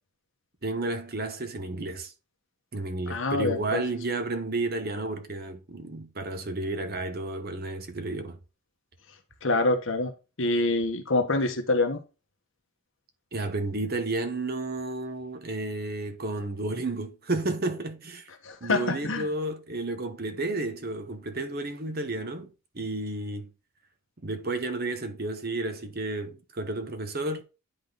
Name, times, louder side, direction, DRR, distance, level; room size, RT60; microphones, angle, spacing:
voice 1, 0.6-2.1 2.7-8.4 13.3-18.3 18.6-22.5 22.7-23.5 24.2-27.4, right 2 dB, 45° right, 1.1 m, -32 dB
voice 2, 3.1-3.8 9.4-10.1 10.4-12.0 18.4-19.3, left 2 dB, 60° left, 1.4 m, -26 dB
10.5 x 3.9 x 3.9 m
head